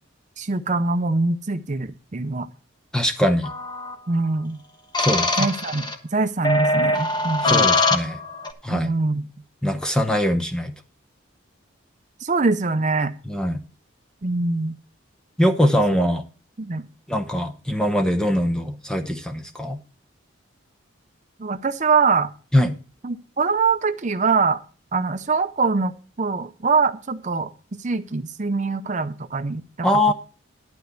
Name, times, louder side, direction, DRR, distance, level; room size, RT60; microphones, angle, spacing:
voice 1, 0.4-2.5 4.1-4.6 5.4-7.7 8.7-9.2 12.2-13.1 14.2-14.8 16.6-16.8 21.4-22.3 23.0-24.6 24.9-27.5 27.8-30.1, right 4 dB, 40° right, 9 dB, 0.6 m, -23 dB
voice 2, 2.9-3.5 5.0-5.5 7.4-8.2 8.6-8.9 9.6-10.7 13.3-13.6 15.4-16.2 17.1-19.8 22.5-22.7 29.8-30.1, equal, 5° left, 5 dB, 0.8 m, -22 dB
sound 1, 3.4-3.9 4.9-5.9 6.4-8.5, left 2 dB, 20° left, 1.1 m, -22 dB
12.0 x 4.3 x 8.2 m, 0.36 s
head